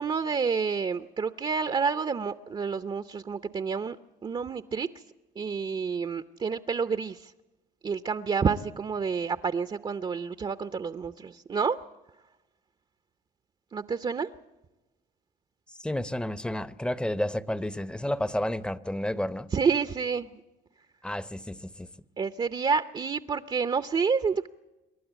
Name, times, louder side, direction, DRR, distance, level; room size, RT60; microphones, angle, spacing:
voice 1, 0.0-4.0 4.2-4.9 5.4-7.3 7.8-11.8 13.7-14.3 19.5-20.3 22.2-24.5, right 5 dB, 30° right, 0.7 m, -29 dB
voice 2, 15.8-19.5 21.0-21.9, left 1 dB, 5° left, 0.8 m, -31 dB
28.0 x 12.0 x 8.1 m
cardioid pair, 110°, 17 cm